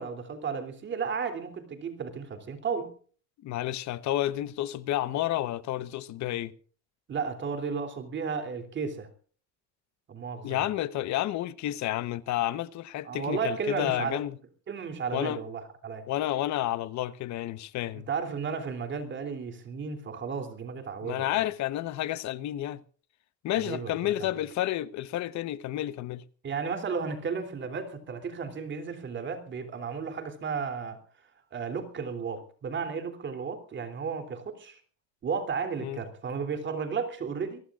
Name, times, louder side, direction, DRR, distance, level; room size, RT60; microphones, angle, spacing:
voice 1, 0.0-2.9 7.1-9.1 10.1-10.6 13.0-14.2 14.7-16.1 17.9-21.4 23.5-24.3 26.4-31.0 31.5-34.8 35.2-37.6, right 5 dB, 30° right, 3.2 m, -34 dB
voice 2, 3.4-6.5 10.4-14.4 15.1-15.4 16.1-18.1 21.0-22.8 23.4-26.2 35.8-36.0, left 13 dB, 50° left, 1.1 m, -30 dB
22.5 x 20.5 x 2.5 m
cardioid pair, 145°, 35 cm